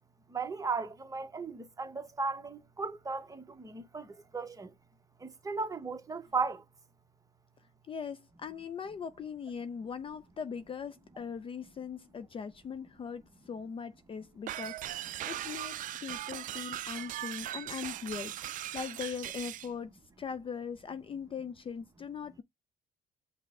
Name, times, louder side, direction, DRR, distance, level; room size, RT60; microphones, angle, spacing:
voice 1, 0.3-4.7 5.2-6.6, right 4 dB, 20° right, 0.9 m, -36 dB
voice 2, 7.9-22.4, left 6 dB, 30° left, 0.4 m, -40 dB
sound 1, 14.5-19.7, right 13 dB, 50° right, 0.4 m, -39 dB
5.6 x 2.1 x 3.6 m
cardioid pair, 110°, 17 cm